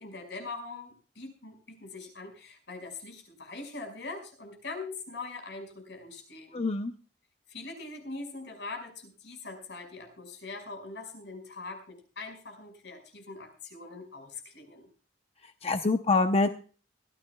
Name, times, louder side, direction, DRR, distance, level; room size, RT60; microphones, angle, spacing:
voice 1, 0.0-6.6 7.5-14.9, left 3 dB, 75° left, 3 dB, 5.3 m, -42 dB
voice 2, 6.5-6.9 15.6-16.5, left 3 dB, 35° left, 7 dB, 0.8 m, -25 dB
21.5 x 15.0 x 2.3 m, 0.37 s
head